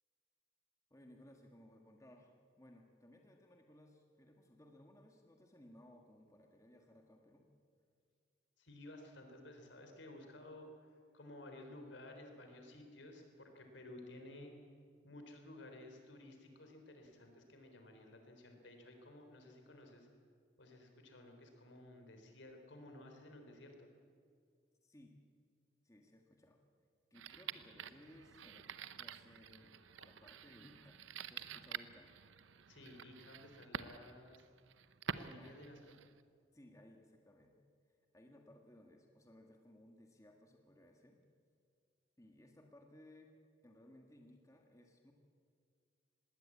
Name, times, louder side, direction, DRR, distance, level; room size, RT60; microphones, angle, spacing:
voice 1, 0.9-7.5 24.8-25.2 25.8-26.6 27.1-32.1 35.4-35.7 36.5-37.6 38.1-41.2 42.2-43.3 43.6-45.1, left 1 dB, 15° left, 2 dB, 1.6 m, -61 dB
voice 2, 8.6-10.7 11.1-14.5 15.0-20.1 20.6-23.9 29.9-30.0 32.7-34.5 35.1-35.8, left 1 dB, 80° left, 4 dB, 3.7 m, -55 dB
sound 1, 27.1-36.2, right 7 dB, 85° right, 0.8 m, -49 dB
20.5 x 17.5 x 8.5 m, 2.2 s
head